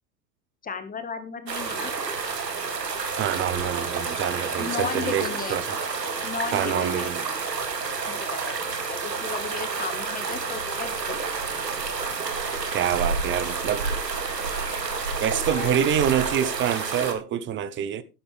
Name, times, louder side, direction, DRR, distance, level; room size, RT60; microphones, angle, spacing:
voice 1, 0.6-1.9 4.6-5.6 6.2-7.1 8.1-8.2 8.9-10.9 15.5-15.8, left 6 dB, 15° left, 1.4 m, -34 dB
sound 1, 1.5-17.1, right 4 dB, 85° right, 2.5 m, -29 dB
voice 2, 3.2-5.8 6.5-7.2 12.7-13.9 15.2-18.0, right 10 dB, 25° right, 0.8 m, -26 dB
11.5 x 11.0 x 3.3 m
hypercardioid pair, 100°, 48 cm